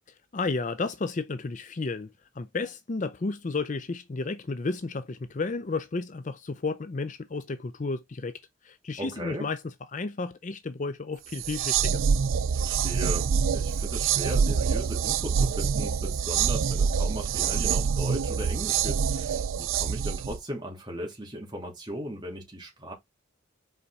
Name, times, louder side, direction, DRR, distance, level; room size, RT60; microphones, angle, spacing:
voice 1, 0.3-12.0, left 3 dB, 35° left, 0.4 m, -32 dB
voice 2, 9.0-9.5 12.5-22.9, equal, 20° right, 2.8 m, -37 dB
sound 1, 11.3-20.4, right 6 dB, 70° right, 0.4 m, -26 dB
5.6 x 4.8 x 4.1 m
head